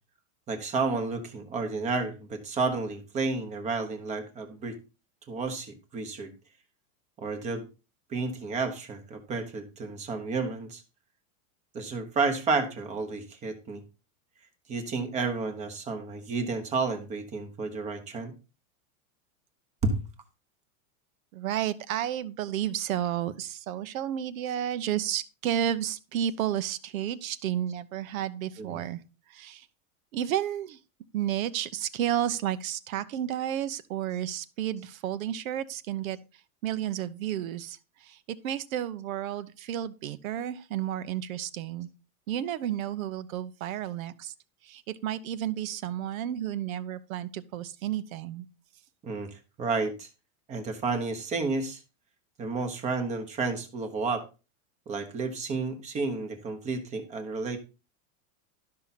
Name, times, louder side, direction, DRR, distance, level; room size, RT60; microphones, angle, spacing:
voice 1, 0.5-4.8 5.3-6.3 7.2-7.6 8.1-10.8 11.7-13.8 14.7-18.3 19.8-20.0 28.6-28.8 49.0-50.1 50.5-51.8 52.4-54.2 54.9-57.6, right 4 dB, 15° right, 1.0 m, -31 dB
voice 2, 21.3-29.0 29.3-29.7 30.1-30.8 31.1-36.2 36.6-41.9 42.3-44.3 44.6-48.5, right 11 dB, 75° right, 1.0 m, -32 dB
12.0 x 5.8 x 4.1 m
supercardioid pair, 175°, 42 cm